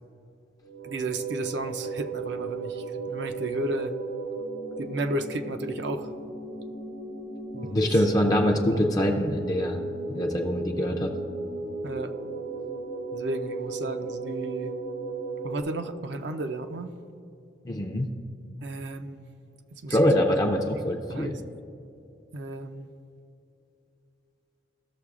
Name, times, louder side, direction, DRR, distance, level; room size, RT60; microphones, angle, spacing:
sound 1, 0.6-15.6, right 3 dB, 85° right, 2.1 m, -35 dB
voice 1, 0.8-3.9 4.8-6.1 7.5-8.0 8.7-8.8 11.8-12.1 13.1-14.7 15.4-16.9 18.6-19.2 19.8-20.0 21.1-21.4 22.3-22.9, right 2 dB, 65° right, 7 dB, 0.5 m, -33 dB
voice 2, 7.6-9.8 10.1-11.1 17.7-18.1 19.9-21.4, equal, 20° left, 2 dB, 0.4 m, -24 dB
14.5 x 6.6 x 2.4 m, 2.7 s
head